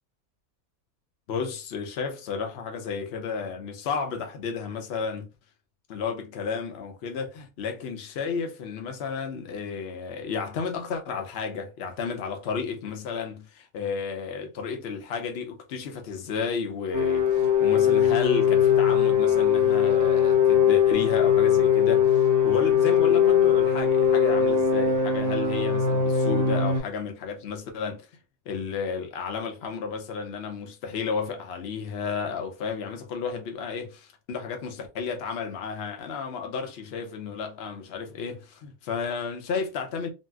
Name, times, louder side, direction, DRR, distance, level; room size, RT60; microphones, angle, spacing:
voice 1, 1.3-5.3 5.9-28.1 28.5-40.1, left 5 dB, 55° left, 0.7 m, -32 dB
sound 1, 16.9-26.8, left 8 dB, 15° right, 0.7 m, -21 dB
4.0 x 2.0 x 2.3 m
omnidirectional pair, 1.6 m